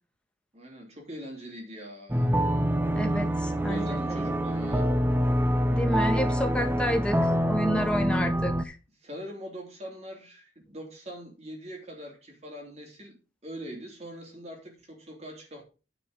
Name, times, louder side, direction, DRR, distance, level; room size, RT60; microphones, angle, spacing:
voice 1, 0.5-2.3 3.5-4.9 9.0-15.6, equal, 40° right, 3.2 m, -42 dB
sound 1, 2.1-8.6, equal, 10° right, 0.6 m, -26 dB
voice 2, 2.9-4.2 5.7-7.2 7.5-8.8, equal, 5° left, 1.5 m, -30 dB
9.9 x 5.2 x 5.3 m
head